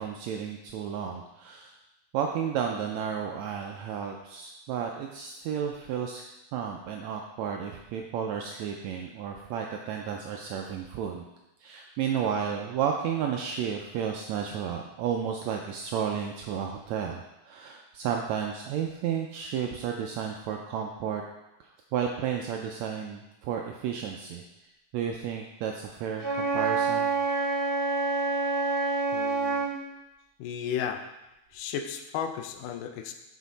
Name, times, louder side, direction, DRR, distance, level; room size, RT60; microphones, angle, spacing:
voice 1, 0.0-1.7 2.1-6.2 6.5-11.2 11.6-21.2 21.9-24.4 24.9-27.1, right 8 dB, 80° right, 2 dB, 1.6 m, -32 dB
Wind instrument woodwind instrument, 26.2-29.8, right 4 dB, 30° left, 2.8 m, -27 dB
voice 2, 29.1-29.7 30.4-31.0 31.5-33.1, left 8 dB, 85° left, 6 dB, 2.2 m, -34 dB
6.4 x 5.7 x 4.0 m, 0.95 s
omnidirectional pair, 3.6 m